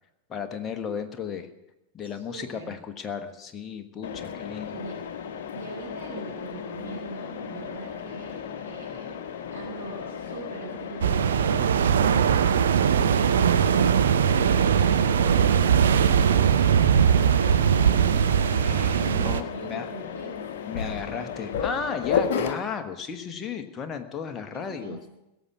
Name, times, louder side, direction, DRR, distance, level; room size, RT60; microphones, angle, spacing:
voice 1, 0.3-1.5 1.9-4.8 18.6-19.9 20.7-25.0, left 6 dB, 25° left, 6 dB, 1.3 m, -34 dB
voice 2, 2.0-2.8 4.7-5.0 5.5-9.2 9.5-17.3 19.1-20.5 24.5-25.1, right 3 dB, 80° right, -7 dB, 4.1 m, -42 dB
Mechanisms, 4.0-22.5, left 7 dB, 55° left, 1.1 m, -34 dB
sound 1, 11.0-19.4, right 8 dB, 65° right, 0.7 m, -20 dB
17.0 x 7.2 x 9.6 m, 0.92 s
figure-of-eight pair, 90°, 0 cm